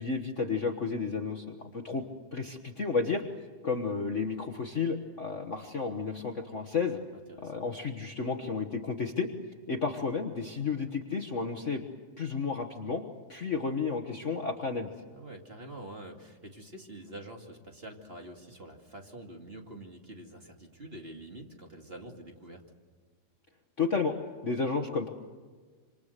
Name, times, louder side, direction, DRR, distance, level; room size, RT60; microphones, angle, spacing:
voice 1, 0.0-2.0 2.3-3.2 3.6-7.0 7.4-9.3 9.7-11.8 12.2-13.0 13.3-14.9 23.8-24.1 24.4-25.1, left 4 dB, 80° left, 4 dB, 0.6 m, -32 dB
voice 2, 7.1-7.7 15.1-22.6, right 1 dB, 20° right, 2 dB, 2.2 m, -46 dB
27.0 x 26.5 x 6.7 m, 1.5 s
omnidirectional pair, 3.5 m